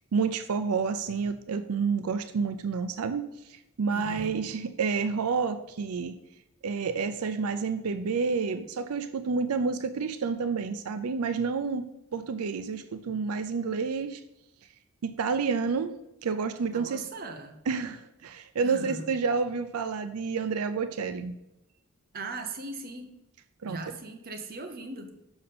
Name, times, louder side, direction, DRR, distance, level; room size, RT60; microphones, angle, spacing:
voice 1, 0.1-3.2 3.5-6.1 6.6-11.9 12.1-14.2 15.0-16.0 16.2-17.0 17.7-21.3 23.6-23.8, right 5 dB, 80° right, 10 dB, 0.5 m, -29 dB
voice 2, 3.9-4.4 16.7-17.6 18.6-19.1 22.1-23.2 23.6-25.2, right 2 dB, 45° right, 6 dB, 0.8 m, -39 dB
6.4 x 5.9 x 4.1 m, 0.92 s
head